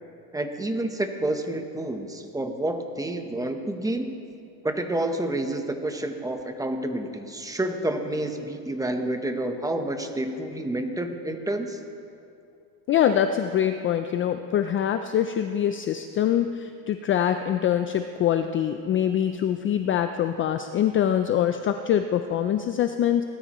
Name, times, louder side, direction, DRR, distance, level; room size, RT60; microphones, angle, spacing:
voice 1, 0.3-4.2 4.6-11.8, right 1 dB, 10° right, 6 dB, 0.9 m, -29 dB
voice 2, 12.9-23.2, left 9 dB, 30° left, 8 dB, 0.4 m, -24 dB
18.5 x 13.0 x 3.0 m, 2.4 s
cardioid pair, 130°, 42 cm